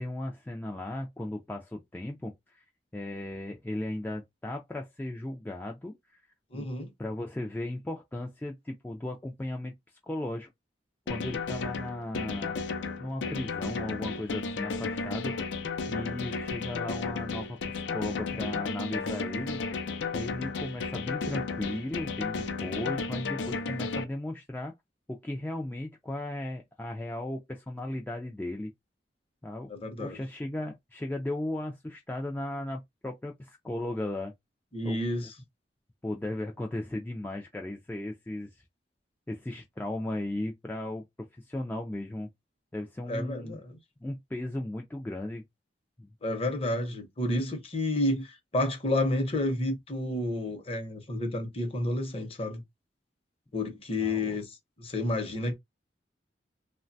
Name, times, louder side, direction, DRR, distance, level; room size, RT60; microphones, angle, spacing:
voice 1, 0.0-2.7 2.9-6.2 6.5-6.7 7.0-10.5 11.1-12.6 13.0-15.3 15.9-19.6 20.1-24.7 25.1-28.7 29.4-29.7 30.0-34.3 34.8-35.0 36.0-38.6 39.3-41.0 41.4-42.3 42.7-43.6 44.0-45.4 46.0-46.1 54.0-54.4, left 1 dB, 10° left, 0.3 m, -36 dB
voice 2, 6.5-6.9 29.7-30.2 34.7-35.3 43.1-43.8 46.2-52.6 53.5-55.5, left 1 dB, 35° left, 0.7 m, -30 dB
sound 1, 11.1-24.0, left 4 dB, 85° left, 0.5 m, -33 dB
3.1 x 2.1 x 2.6 m
head